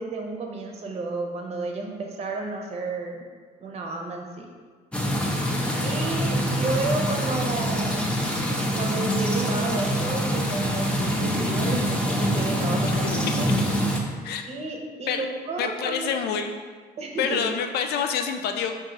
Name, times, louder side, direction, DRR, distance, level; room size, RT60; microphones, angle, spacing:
voice 1, 0.0-3.2 3.6-4.5 5.8-8.1 8.7-13.5 14.5-16.2 17.0-17.6, right 3 dB, 40° right, 1 dB, 0.7 m, -32 dB
sound 1, 4.9-14.0, equal, 5° left, 0.5 m, -25 dB
voice 2, 15.6-16.5 17.2-18.7, left 7 dB, 70° left, 6 dB, 0.4 m, -27 dB
4.5 x 2.7 x 3.8 m, 1.5 s
cardioid pair, 110°, 17 cm